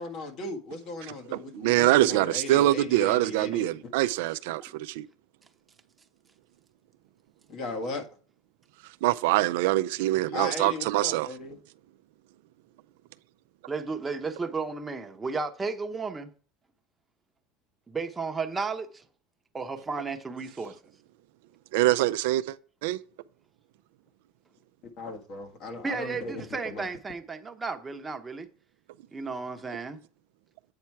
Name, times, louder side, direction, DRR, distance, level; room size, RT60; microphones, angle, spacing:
voice 1, 0.0-3.7 7.5-8.1 10.3-11.6 25.0-26.8, left 2 dB, 55° left, 1.6 m, -37 dB
voice 2, 1.0-5.1 9.0-11.3 21.7-22.6 22.8-23.0, right 16 dB, 75° right, 0.4 m, -24 dB
voice 3, 13.7-16.3 17.9-19.0 19.5-20.8 25.8-28.5 29.1-30.0, right 4 dB, 15° right, 0.9 m, -33 dB
8.5 x 4.3 x 4.6 m
supercardioid pair, 110°, 0 cm